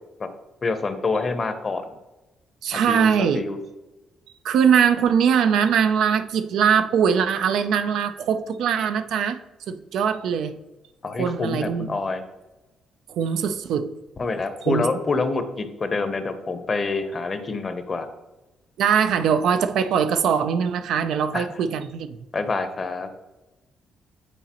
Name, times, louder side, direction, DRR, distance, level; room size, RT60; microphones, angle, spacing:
voice 1, 0.6-1.8 2.7-3.6 11.0-12.2 14.2-18.1 21.3-21.5 22.3-23.1, left 3 dB, 35° left, 0.7 m, -27 dB
voice 2, 2.6-3.4 4.4-9.4 9.7-10.6 11.2-11.9 13.1-13.9 14.6-14.9 18.8-22.2, right 7 dB, 80° right, 0.4 m, -21 dB
8.2 x 4.0 x 2.9 m
cardioid pair, 90°, 0 cm